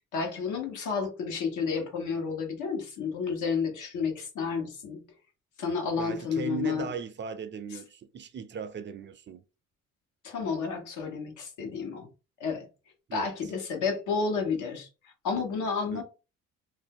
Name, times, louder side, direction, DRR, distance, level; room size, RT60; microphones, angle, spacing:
voice 1, 0.1-5.0 5.6-6.9 10.2-12.1 12.4-12.7 13.1-14.9 15.2-16.0, left 5 dB, 80° left, 1.1 m, -31 dB
voice 2, 6.0-9.4 13.1-13.3 15.9-16.0, right 6 dB, 40° right, 0.4 m, -38 dB
2.6 x 2.2 x 3.5 m
cardioid pair, 90°, 30 cm